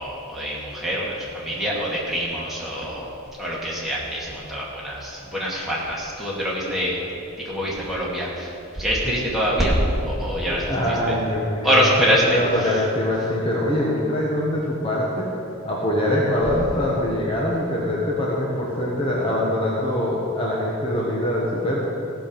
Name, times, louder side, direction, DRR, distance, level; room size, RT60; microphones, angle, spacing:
voice 1, 0.0-3.1 3.4-7.0 7.4-9.8 10.1-11.2 11.6-12.8, equal, ahead, -6 dB, 2.3 m, -25 dB
voice 2, 10.5-15.3 15.6-21.8, left 1 dB, 25° left, -5 dB, 1.3 m, -23 dB
16.0 x 7.0 x 5.3 m, 2.7 s
head